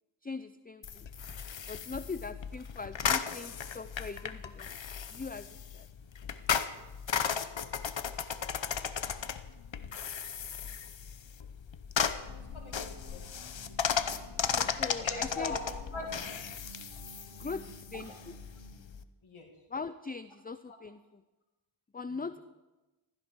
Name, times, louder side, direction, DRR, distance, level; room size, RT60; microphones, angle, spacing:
voice 1, 0.2-1.1 1.7-4.7 5.1-5.5 5.7-5.9 14.5-15.6 17.3-18.1 19.7-21.0 21.9-22.4, left 4 dB, 20° left, 12 dB, 0.5 m, -40 dB
sound 1, 0.8-19.0, left 7 dB, 70° left, 0.8 m, -36 dB
voice 2, 12.1-15.6 15.9-16.1 17.9-18.1 19.2-19.5 20.7-20.8 22.1-22.4, left 3 dB, 90° left, 1 dB, 2.1 m, -44 dB
sound 2, 12.3-18.8, right 4 dB, 80° right, 2.6 m, -53 dB
15.5 x 15.0 x 4.7 m, 1.1 s
wide cardioid pair, 45°, 47 cm